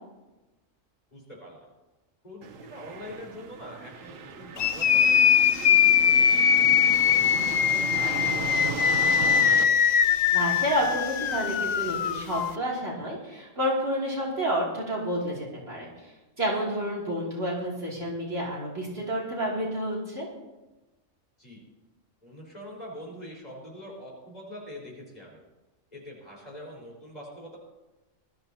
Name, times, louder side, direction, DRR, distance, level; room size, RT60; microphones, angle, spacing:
voice 1, 1.1-1.6 2.2-6.6 7.1-9.8 21.4-21.6 22.2-25.4 25.9-27.6, equal, 30° left, -3 dB, 5.0 m, -44 dB
sound 1, 2.4-9.6, right 6 dB, 80° right, 1.2 m, -36 dB
sound 2, 4.6-12.5, left 8 dB, 85° left, 0.3 m, -22 dB
voice 2, 10.3-16.1 16.4-20.3, equal, 50° right, -5 dB, 3.1 m, -29 dB
19.5 x 13.0 x 2.9 m, 1.1 s
omnidirectional pair, 1.4 m